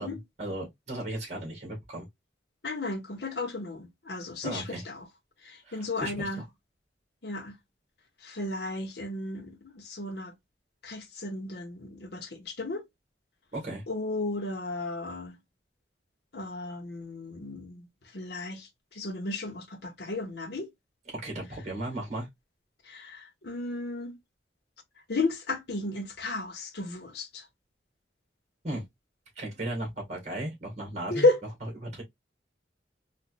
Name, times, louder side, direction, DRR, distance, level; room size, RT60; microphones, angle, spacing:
voice 1, 0.0-2.1 4.4-4.8 5.6-6.4 13.5-13.8 21.1-22.3 28.6-28.8 29.4-31.3 31.8-32.0, right 1 dB, 40° right, 1.9 m, -36 dB
voice 2, 2.6-5.1 5.4-6.4 7.2-7.6 8.2-10.3 10.8-12.9 13.9-15.4 16.3-17.9 18.1-20.7 22.8-24.2 25.1-27.5 31.1-31.4, left 2 dB, 65° left, 1.0 m, -33 dB
4.1 x 2.5 x 2.4 m
head